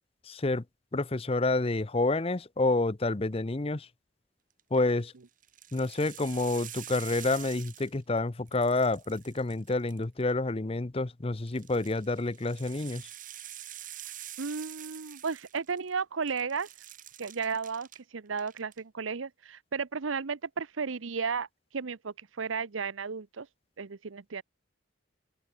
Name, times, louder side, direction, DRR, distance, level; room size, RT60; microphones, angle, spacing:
voice 1, 0.3-0.6 0.9-3.9 4.7-5.1 5.7-13.0, left 2 dB, 30° left, 0.7 m, -28 dB
sound 1, 4.6-4.9 5.4-8.2 8.5-10.3 11.5-16.0 16.3-18.0 18.3-18.8, right 12 dB, 40° right, 2.8 m, -46 dB
voice 2, 14.4-16.7 17.2-17.9 18.1-21.5 21.7-23.5 23.8-24.4, right 5 dB, 85° right, 0.8 m, -34 dB
open air
head